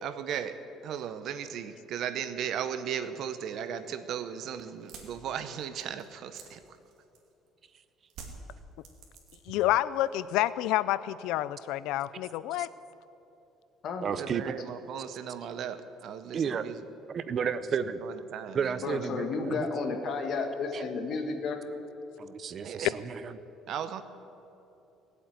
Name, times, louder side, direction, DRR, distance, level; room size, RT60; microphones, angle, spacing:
voice 1, 0.0-6.6 14.2-16.9 18.0-19.3 22.6-23.0 23.7-24.0, right 8 dB, 55° right, 11 dB, 0.8 m, -37 dB
sound 1, 4.8-7.5 8.1-9.7 9.9-10.5, right 5 dB, 70° right, 2.4 m, -49 dB
voice 2, 9.5-12.7, left 14 dB, 90° left, 17 dB, 0.4 m, -28 dB
voice 3, 14.0-14.4 16.3-16.7 17.1-18.0 18.5-19.7 20.7-20.8 22.2-23.3, right 7 dB, 35° right, 13 dB, 0.5 m, -32 dB
voice 4, 18.8-21.6, left 4 dB, 45° left, 4 dB, 1.7 m, -32 dB
18.0 x 8.0 x 9.4 m, 3.0 s
cardioid pair, 155°, 0 cm